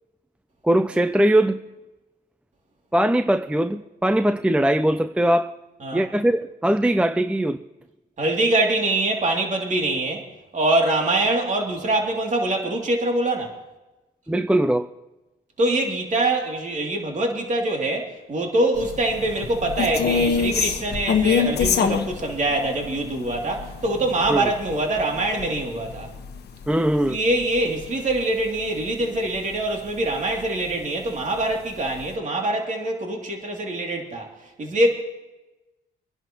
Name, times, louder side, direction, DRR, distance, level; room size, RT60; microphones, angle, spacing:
voice 1, 0.6-1.6 2.9-5.5 5.9-7.6 14.3-14.9 24.3-24.5 26.7-27.2, right 1 dB, 5° right, 9 dB, 0.5 m, -20 dB
voice 2, 8.2-10.3 10.5-13.5 15.6-26.1 27.1-34.3 34.6-34.9, right 2 dB, 40° right, 1 dB, 2.8 m, -24 dB
sound 1, 18.8-29.2 29.5-29.7 30.1-30.9 31.3-31.4 31.7-32.1, left 6 dB, 55° left, 1.3 m, -26 dB
25.0 x 10.5 x 3.0 m, 1.0 s
cardioid pair, 90°, 20 cm